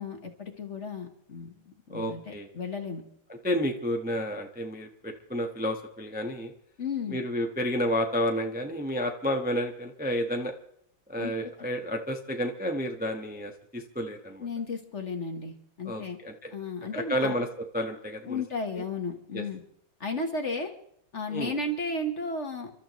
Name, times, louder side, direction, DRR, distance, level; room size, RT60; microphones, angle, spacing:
voice 1, 0.0-1.5 1.9-3.0 6.8-7.2 11.2-11.3 11.6-11.7 14.4-16.2 16.5-17.4 18.2-19.6 20.0-20.7 21.1-22.7, left 3 dB, 40° left, 4 dB, 1.4 m, -34 dB
voice 2, 1.9-2.5 3.3-6.5 7.1-10.5 11.1-14.5 15.8-16.5 16.9-17.5 17.7-18.4 19.3-19.4 21.3-21.5, equal, 5° right, 3 dB, 0.9 m, -31 dB
30.0 x 13.0 x 3.1 m, 0.69 s
omnidirectional pair, 2.2 m